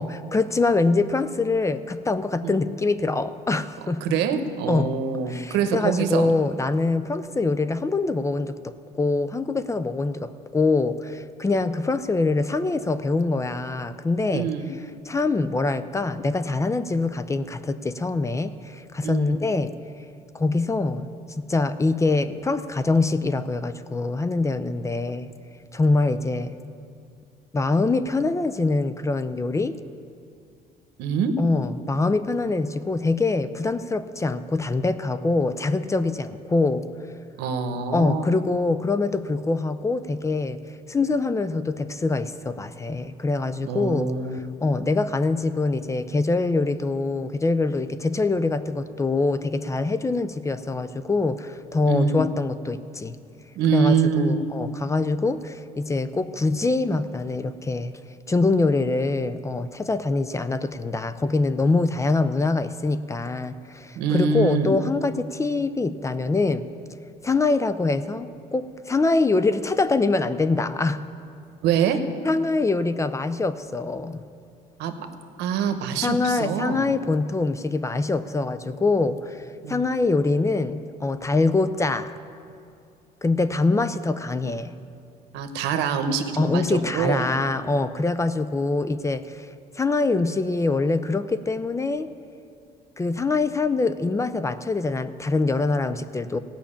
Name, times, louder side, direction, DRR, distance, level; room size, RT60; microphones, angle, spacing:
voice 1, 0.0-4.1 4.7-4.9 5.3-14.5 15.1-19.7 20.3-21.1 21.4-25.3 25.7-26.5 27.5-29.8 31.4-36.9 37.9-40.6 40.9-44.1 44.6-53.1 53.7-57.9 58.3-66.6 67.2-71.0 72.2-74.2 76.0-79.3 79.7-82.1 83.2-84.7 86.4-89.2 89.8-92.1 93.0-96.4, left 3 dB, 15° left, 13 dB, 0.5 m, -24 dB
voice 2, 4.0-6.3 14.3-14.7 19.0-19.4 31.0-31.3 37.4-38.2 43.7-44.4 51.9-52.2 53.6-54.4 64.0-64.7 71.6-72.0 74.8-74.9 75.4-76.8 79.6-79.8 85.3-87.3, right 6 dB, 90° right, 8 dB, 1.0 m, -24 dB
16.5 x 5.8 x 8.6 m, 2.5 s
cardioid pair, 110°, 17 cm